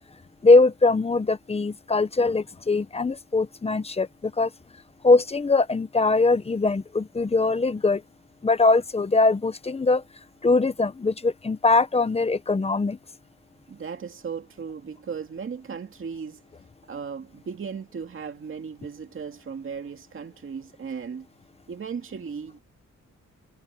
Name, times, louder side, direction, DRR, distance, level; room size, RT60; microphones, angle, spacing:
voice 1, 0.4-4.5 5.0-8.0 8.4-10.0 10.4-13.0, left 3 dB, 20° left, 0.8 m, -21 dB
voice 2, 13.7-16.4 16.9-21.3 21.7-22.6, right 6 dB, 45° right, 2.3 m, -36 dB
wide cardioid pair, 155°, 30 cm